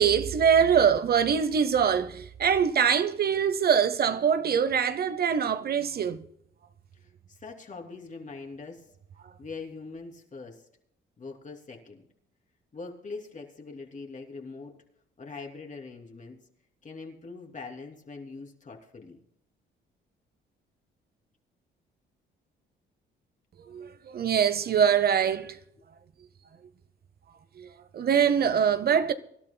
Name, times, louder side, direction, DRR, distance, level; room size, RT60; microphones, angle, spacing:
voice 1, 0.0-6.2 23.7-25.6 27.6-27.7 27.9-29.1, right 7 dB, 50° right, 0.8 m, -23 dB
voice 2, 6.9-8.9 9.4-10.7 11.2-12.1 12.7-14.8 15.2-16.4 16.8-19.2, left 4 dB, 40° left, 3.0 m, -42 dB
24.5 x 12.5 x 2.2 m
cardioid pair, 90°, 20 cm